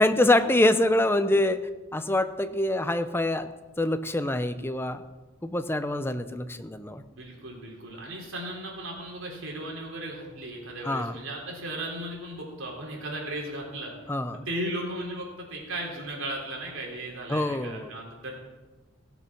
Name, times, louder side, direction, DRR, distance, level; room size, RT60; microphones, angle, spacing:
voice 1, 0.0-1.6 1.9-3.5 3.8-5.0 5.4-7.0 10.9-11.1 14.1-14.4 17.3-17.9, left 1 dB, 10° left, 10 dB, 0.6 m, -25 dB
voice 2, 7.1-13.9 14.5-18.3, right 1 dB, 80° right, -1 dB, 3.5 m, -36 dB
16.5 x 6.9 x 5.9 m, 1.2 s
head